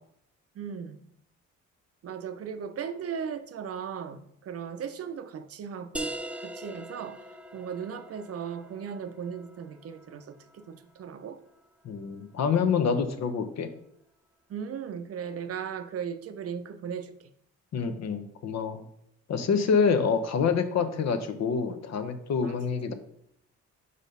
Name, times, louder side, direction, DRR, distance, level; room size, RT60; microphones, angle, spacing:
voice 1, 0.5-1.0 2.0-6.1 6.4-7.2 7.5-11.4 14.5-17.3 22.4-22.5, right 7 dB, 50° right, 10 dB, 0.6 m, -37 dB
sound 1, 5.9-11.3, right 1 dB, 5° right, 0.5 m, -42 dB
voice 2, 11.8-13.7 17.7-18.8 19.3-22.9, left 6 dB, 60° left, 8 dB, 0.8 m, -27 dB
5.0 x 4.2 x 5.3 m, 0.73 s
cardioid pair, 90°, 30 cm